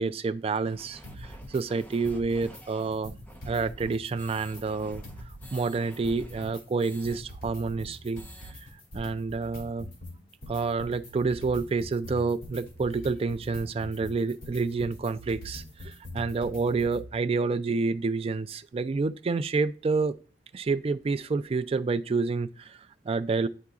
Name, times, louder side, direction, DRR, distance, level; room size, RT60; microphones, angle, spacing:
voice 1, 0.0-3.1 3.4-5.0 5.5-8.2 8.9-9.9 10.5-20.2 20.5-23.5, right 4 dB, 35° right, 0.3 m, -29 dB
sound 1, 0.6-7.2 7.5-7.6 7.9-8.5, equal, 10° left, 0.8 m, -50 dB
sound 2, 1.0-1.6 1.9-2.6 2.9-5.6 5.9-17.0, equal, 55° left, 2.2 m, -43 dB
10.5 x 3.8 x 2.4 m
head